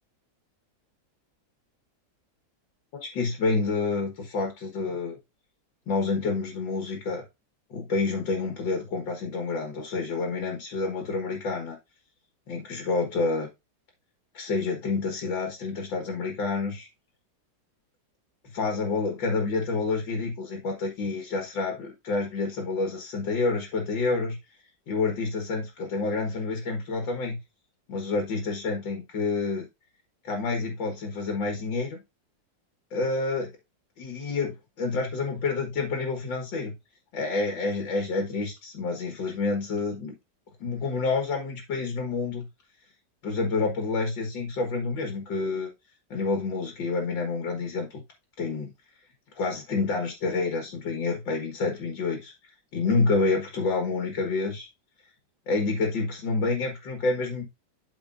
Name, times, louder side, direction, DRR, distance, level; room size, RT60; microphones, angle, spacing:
voice 1, 3.0-5.2 5.9-7.2 7.7-11.8 12.5-13.5 14.3-16.9 18.5-24.4 24.9-27.4 27.9-29.7 30.2-32.0 32.9-33.5 34.0-36.7 37.1-40.2 40.6-42.5 43.2-45.7 46.1-48.0 48.4-48.7 49.4-52.3 52.7-54.7 55.5-57.4, left 3 dB, 85° left, 3 dB, 2.3 m, -28 dB
12.5 x 4.6 x 2.6 m, 0.23 s
omnidirectional pair, 2.0 m